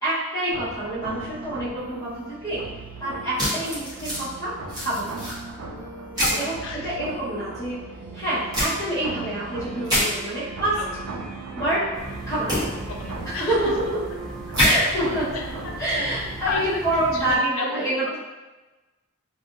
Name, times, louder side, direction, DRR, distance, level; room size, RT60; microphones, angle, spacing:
voice 1, 0.0-2.1 2.4-2.6 3.0-4.5 4.8-5.2 6.4-6.5 6.8-7.8 8.1-10.7 11.5-11.8 12.3-12.6 13.3-13.6 14.6-15.3 15.8-18.2, right 1 dB, 20° left, -12 dB, 1.1 m, -26 dB
sound 1, 0.5-16.5, right 3 dB, 85° right, 0.4 m, -38 dB
sound 2, 3.4-4.2 4.7-5.3 6.2-6.4 8.5-8.7 9.8-10.0 12.5-12.6 14.5-14.7, equal, 20° right, 1.0 m, -23 dB
voice 2, 6.2-6.9 7.3-7.4 10.8-11.0 12.9-13.6 13.8-13.9 14.5-14.6 15.3-16.8 17.1-18.2, left 4 dB, 80° left, 2 dB, 0.4 m, -34 dB
sound 3, 11.9-17.4, equal, ahead, 0.5 m, -39 dB
2.7 x 2.5 x 2.5 m, 1.2 s
head